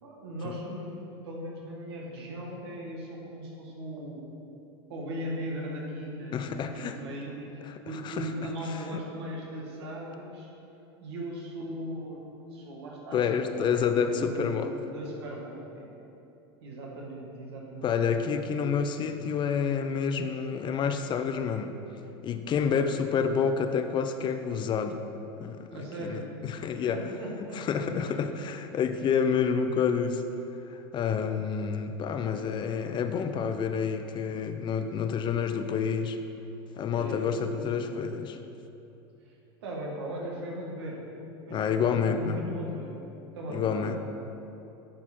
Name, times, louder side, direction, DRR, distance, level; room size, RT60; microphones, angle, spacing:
voice 1, 0.0-4.2 4.9-10.5 11.0-15.9 16.6-18.3 25.7-26.3 26.9-27.9 36.9-37.9 39.3-39.4 39.6-41.0 41.5-43.0 43.3-43.9, equal, 80° right, -2 dB, 1.9 m, -38 dB
voice 2, 6.3-7.0 7.7-7.8 8.0-8.3 8.9-9.0 13.1-14.7 17.8-21.7 22.2-25.0 25.4-25.7 26.0-27.0 27.5-30.2 30.7-36.2 36.8-38.4 41.5-42.4 43.5-44.0, left 6 dB, 35° left, 8 dB, 0.5 m, -28 dB
11.0 x 4.3 x 4.5 m, 2.9 s
hypercardioid pair, 100°, 14 cm